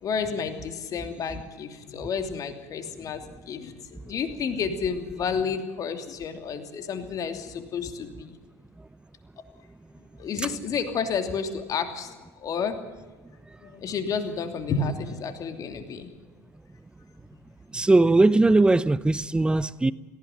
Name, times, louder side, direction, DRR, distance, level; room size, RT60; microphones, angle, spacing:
voice 1, 0.0-8.3 10.2-12.8 13.6-16.1, left 5 dB, 45° left, 2.9 m, -31 dB
voice 2, 17.7-19.9, right 2 dB, 10° right, 0.7 m, -19 dB
18.0 x 15.5 x 9.4 m
hypercardioid pair, 75°, 8 cm